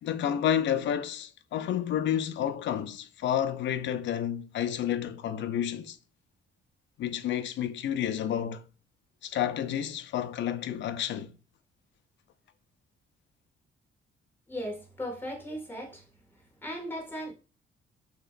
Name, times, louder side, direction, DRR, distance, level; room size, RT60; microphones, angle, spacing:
voice 1, 0.0-6.0 7.0-8.6 9.2-11.3, left 10 dB, 70° left, 0.6 m, -30 dB
voice 2, 14.5-16.1 16.3-17.3, equal, 10° left, 2.0 m, -37 dB
6.3 x 3.0 x 2.5 m
cardioid pair, 90°, 20 cm